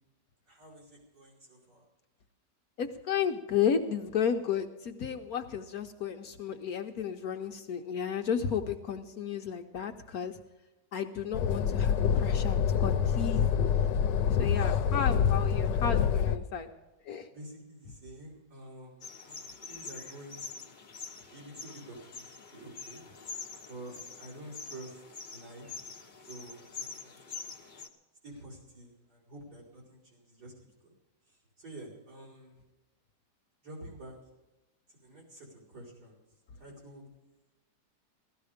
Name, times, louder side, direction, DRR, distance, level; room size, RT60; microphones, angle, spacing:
voice 1, 0.5-1.8 14.6-15.2 17.3-20.6 21.3-23.0 23.7-25.0 25.3-25.8 26.3-27.4 28.2-30.5 30.8-30.9 31.3-32.6 33.6-34.2 34.9-36.2 36.6-37.0, right 1 dB, 60° right, -3 dB, 5.5 m, -49 dB
voice 2, 2.8-10.4 10.9-13.5 14.4-16.7 17.0-17.3, left 7 dB, 60° left, 6 dB, 1.2 m, -33 dB
sound 1, 11.3-16.4, left 7 dB, 80° left, 1.3 m, -26 dB
sound 2, 19.0-27.9, left 4 dB, 30° left, 1.1 m, -45 dB
17.0 x 13.5 x 5.0 m, 1.1 s
omnidirectional pair, 1.9 m